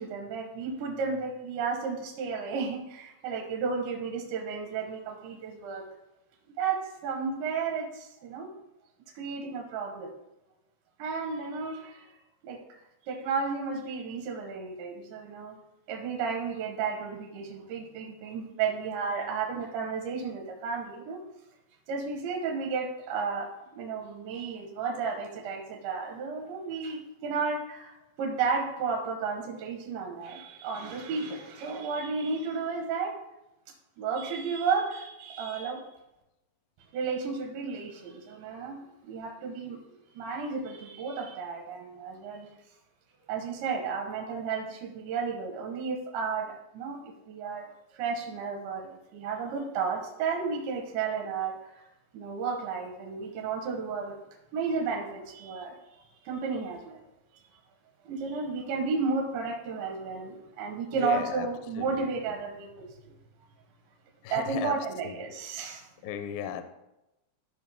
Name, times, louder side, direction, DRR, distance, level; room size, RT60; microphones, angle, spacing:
voice 1, 0.0-5.8 6.6-8.5 9.1-10.1 11.0-12.1 12.4-12.6 13.1-15.6 15.9-21.2 21.9-33.1 34.0-35.9 36.9-42.5 43.3-47.6 47.9-51.9 52.1-54.2 54.5-57.0 57.3-57.5 58.0-63.1 64.3-65.9, right 5 dB, 85° right, 1 dB, 3.5 m, -33 dB
voice 2, 60.9-61.5 61.8-62.3 64.2-64.8 65.0-65.3 66.0-66.6, left 9 dB, 80° left, 9 dB, 2.1 m, -36 dB
14.0 x 6.0 x 3.5 m, 0.92 s
omnidirectional pair, 5.0 m